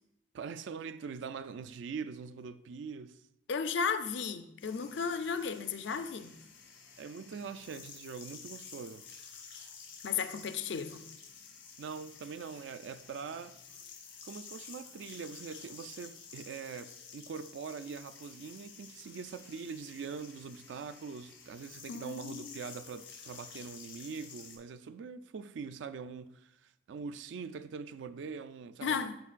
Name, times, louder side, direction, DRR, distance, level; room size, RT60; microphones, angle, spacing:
voice 1, 0.3-3.2 7.0-9.1 11.8-13.6 14.2-29.1, right 5 dB, 70° right, 0.3 m, -43 dB
voice 2, 3.5-6.4 10.0-11.0 21.9-22.6 28.8-29.2, left 6 dB, 65° left, 0.5 m, -34 dB
sound 1, 4.6-24.6, left 6 dB, 90° left, 2.0 m, -51 dB
11.5 x 4.5 x 2.4 m
head